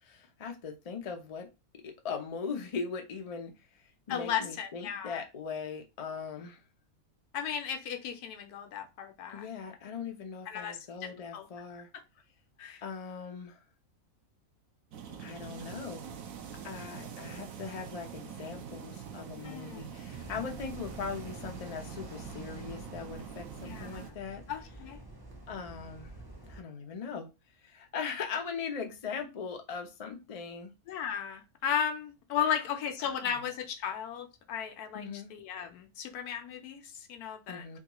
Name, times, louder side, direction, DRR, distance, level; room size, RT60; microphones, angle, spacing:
voice 1, 0.0-1.5 1.8-3.5 4.1-6.6 9.3-11.9 12.8-13.6 15.2-16.1 16.6-24.4 25.5-26.1 26.5-27.3 27.6-30.7 32.4-32.5 33.0-33.4 34.9-35.3 37.5-37.8, left 5 dB, 70° left, 0.3 m, -40 dB
voice 2, 4.1-5.2 7.3-9.5 10.5-11.5 12.6-12.8 19.4-19.9 23.6-24.1 24.5-25.0 30.9-37.8, left 8 dB, 90° left, 1.2 m, -35 dB
sound 1, 14.9-24.1, right 7 dB, 70° right, 1.0 m, -44 dB
sound 2, 20.1-26.6, right 1 dB, 25° right, 0.5 m, -48 dB
3.5 x 2.3 x 2.8 m
omnidirectional pair, 1.6 m